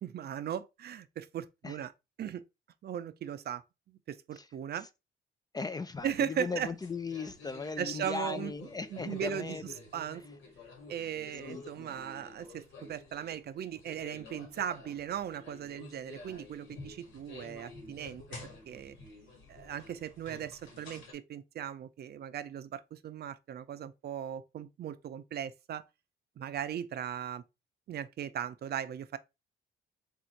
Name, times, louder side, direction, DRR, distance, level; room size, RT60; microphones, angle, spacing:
voice 1, 0.0-1.9 2.2-2.4 2.8-3.6 3.9-4.9 6.0-6.7 7.8-8.5 8.9-9.6 9.9-10.2 10.9-18.2 18.7-19.0 19.5-25.8 26.4-27.4 27.9-29.2, right 9 dB, 55° right, 0.5 m, -38 dB
voice 2, 5.5-9.6 11.0-11.1 11.5-11.9, left 4 dB, 20° left, 0.4 m, -38 dB
sound 1, 6.0-21.1, left 3 dB, 85° left, 1.7 m, -50 dB
3.7 x 2.6 x 4.4 m
cardioid pair, 90°, 20 cm